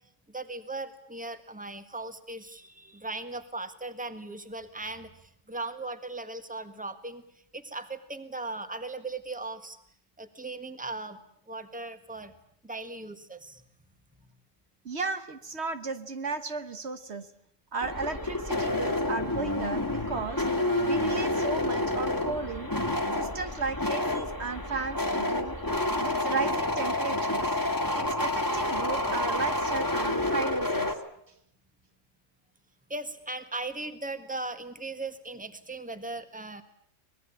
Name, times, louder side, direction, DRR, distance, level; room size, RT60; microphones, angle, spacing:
voice 1, 0.3-7.2 7.5-9.8 10.2-11.2 11.5-12.3 12.6-13.6 32.9-36.6, right 2 dB, 5° right, 9 dB, 1.6 m, -38 dB
voice 2, 14.8-17.3 17.7-20.5 20.8-22.7 23.1-25.5 26.0-27.5 27.9-30.9, right 4 dB, 60° right, 9 dB, 1.5 m, -34 dB
sound 1, 17.8-30.9, left 1 dB, 15° left, 2.1 m, -29 dB
25.0 x 20.5 x 8.8 m, 0.70 s
omnidirectional pair, 1.3 m